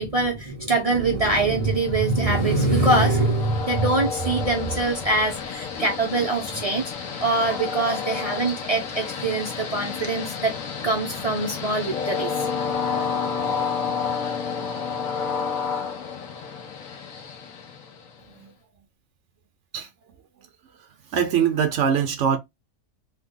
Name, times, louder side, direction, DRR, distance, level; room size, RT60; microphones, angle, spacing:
voice 1, 0.0-6.9 7.2-10.5 10.8-12.3, right 2 dB, 50° right, 0.4 m, -23 dB
Train, 1.6-18.3, left 6 dB, 75° left, 1.2 m, -30 dB
voice 2, 20.8-22.4, right 8 dB, 65° right, 0.8 m, -23 dB
3.3 x 2.1 x 3.5 m
omnidirectional pair, 1.5 m